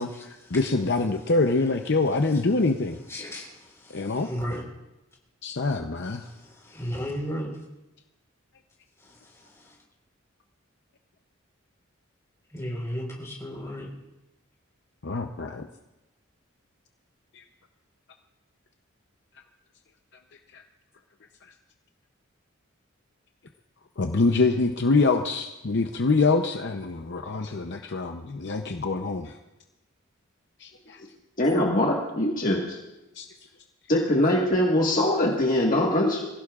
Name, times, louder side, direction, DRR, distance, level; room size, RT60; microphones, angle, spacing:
voice 1, 0.0-3.0 3.9-4.3 5.4-6.2 15.0-15.7 17.3-17.4 20.5-20.6 24.0-29.3 30.6-31.0 33.2-33.3, left 3 dB, 55° left, 5 dB, 0.7 m, -25 dB
voice 2, 3.1-3.5 4.2-4.6 6.7-7.5 12.5-13.9, equal, 15° left, -2 dB, 4.3 m, -32 dB
voice 3, 31.4-32.8 33.9-36.3, left 1 dB, 40° left, -2 dB, 1.6 m, -22 dB
24.0 x 16.0 x 2.4 m, 0.99 s
head